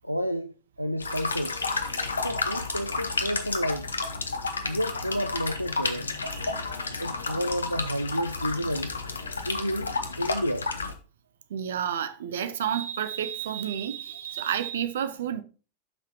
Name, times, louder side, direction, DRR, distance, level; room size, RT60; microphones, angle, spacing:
voice 1, 0.0-1.6 2.2-3.9 4.7-6.2 7.0-8.9 9.4-10.7, equal, 90° right, 0.4 m, -30 dB
sound 1, 1.0-10.9, left 3 dB, 75° left, 1.0 m, -31 dB
voice 2, 6.3-6.6 11.5-15.4, right 9 dB, 60° right, 0.9 m, -30 dB
11.5 x 5.9 x 2.9 m
figure-of-eight pair, 90°, 0 cm